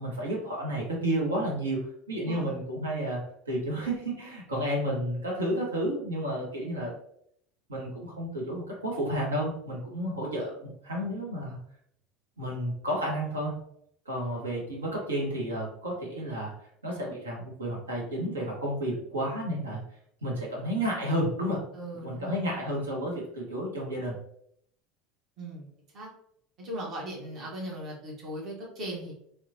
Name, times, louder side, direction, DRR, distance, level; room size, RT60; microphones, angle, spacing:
voice 1, 0.0-6.9 7.7-11.6 12.4-13.5 14.1-16.5 16.8-19.8 20.2-21.6 22.0-24.2, right 1 dB, 80° right, -3 dB, 0.8 m, -31 dB
voice 2, 21.7-22.4 25.4-25.7 25.9-26.1 26.6-29.1, right 1 dB, 45° right, -3 dB, 1.0 m, -38 dB
2.9 x 2.1 x 2.5 m, 0.69 s
figure-of-eight pair, 70°, 0 cm